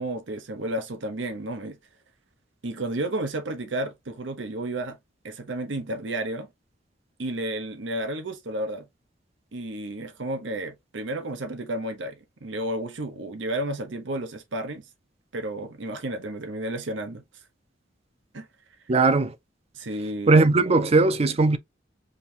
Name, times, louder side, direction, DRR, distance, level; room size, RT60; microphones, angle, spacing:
voice 1, 0.0-1.8 2.6-5.0 5.2-6.5 7.2-8.9 9.5-14.9 15.3-17.2 18.3-18.5 18.9-19.0 19.7-20.5, right 1 dB, 80° right, 0.8 m, -32 dB
voice 2, 18.9-19.3 20.3-21.6, right 3 dB, 35° right, 0.5 m, -19 dB
5.2 x 2.6 x 2.9 m
head